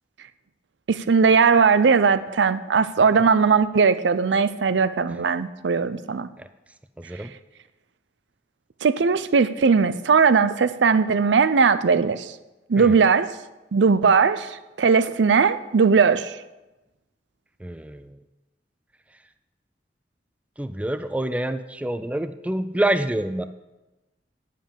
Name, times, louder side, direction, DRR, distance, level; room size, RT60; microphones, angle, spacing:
voice 1, 0.9-6.3 8.8-12.3 12.7-13.3 13.7-16.4, right 5 dB, 90° right, 0.5 m, -19 dB
voice 2, 17.6-18.1 20.6-23.4, right 1 dB, 10° right, 0.3 m, -26 dB
9.1 x 7.5 x 6.9 m
head